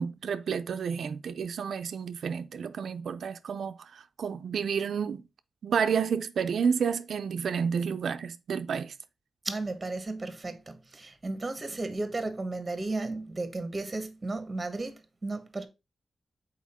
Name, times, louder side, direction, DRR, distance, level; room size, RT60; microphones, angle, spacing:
voice 1, 0.0-5.2 5.6-8.9, right 6 dB, 90° right, 0.4 m, -30 dB
voice 2, 9.4-15.7, right 2 dB, 20° right, 1.0 m, -34 dB
7.2 x 4.3 x 4.1 m
wide cardioid pair, 160°, 0 cm